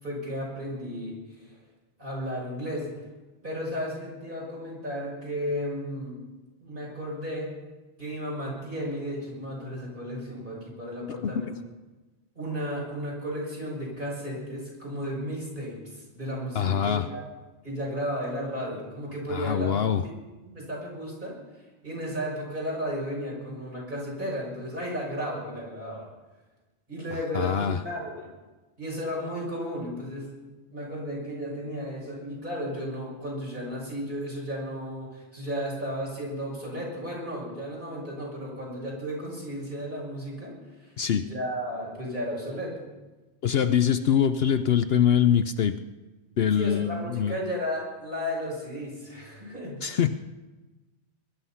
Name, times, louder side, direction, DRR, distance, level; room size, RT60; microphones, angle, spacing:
voice 1, 0.0-1.6 2.0-2.9 3.4-6.2 6.6-7.6 8.0-11.5 12.3-17.2 17.6-19.7 20.0-20.1 20.5-21.4 21.8-26.1 26.9-28.3 28.8-30.4 30.7-40.6 40.8-42.9 46.5-50.0, equal, 45° right, -3 dB, 6.4 m, -34 dB
voice 2, 16.5-17.1 19.3-20.0 27.3-27.8 41.0-41.3 43.4-45.8 46.4-47.4 49.8-50.1, left 8 dB, 60° left, 10 dB, 0.8 m, -24 dB
21.5 x 11.5 x 5.6 m, 1.2 s
omnidirectional pair, 1.2 m